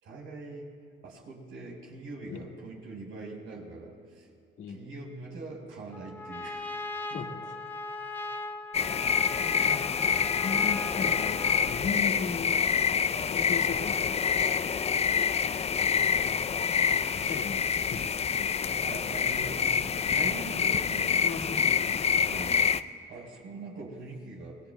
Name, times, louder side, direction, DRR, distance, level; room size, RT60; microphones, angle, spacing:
voice 1, 0.0-0.7 1.0-4.3 4.7-7.2 18.8-21.5 22.3-22.8 23.1-24.6, right 3 dB, 80° right, -1 dB, 4.5 m, -43 dB
Trumpet, 5.9-11.9, left 3 dB, 10° left, 0.8 m, -39 dB
voice 2, 7.1-7.6 9.6-12.6 13.2-14.4 16.2-16.5 17.2-18.8 21.2-22.0, left 5 dB, 75° left, 1 dB, 1.8 m, -37 dB
sound 1, 8.7-22.8, left 6 dB, 30° left, 0.4 m, -27 dB
27.0 x 20.0 x 2.2 m, 2.6 s
cardioid pair, 90°, 20 cm